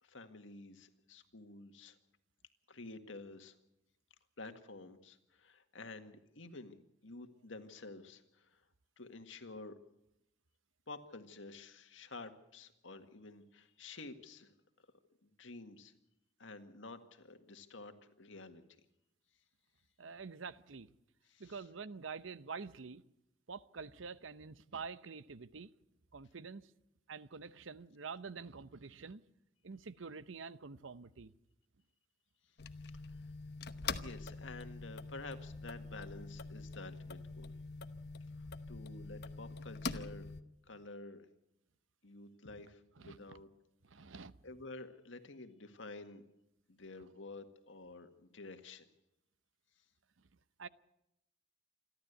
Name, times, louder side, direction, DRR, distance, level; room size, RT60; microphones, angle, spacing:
voice 1, 0.0-2.0 2.7-3.6 4.4-6.8 7.0-8.6 9.0-9.8 10.9-14.5 14.8-14.9 15.2-15.9 16.4-18.8 21.3-21.6 34.0-37.5 38.4-40.3 40.7-41.3 42.0-43.5 44.4-46.2 46.7-48.9, left 3 dB, 80° left, 1.8 m, -50 dB
voice 2, 20.0-20.9 21.4-23.0 23.5-25.7 26.1-26.7 27.1-29.2 29.6-31.3 43.0-43.2 43.8-44.3 50.6-50.7, right 5 dB, 90° right, 0.8 m, -47 dB
sound 1, 32.6-40.4, left 4 dB, 55° left, 1.0 m, -44 dB
27.5 x 12.0 x 8.2 m
head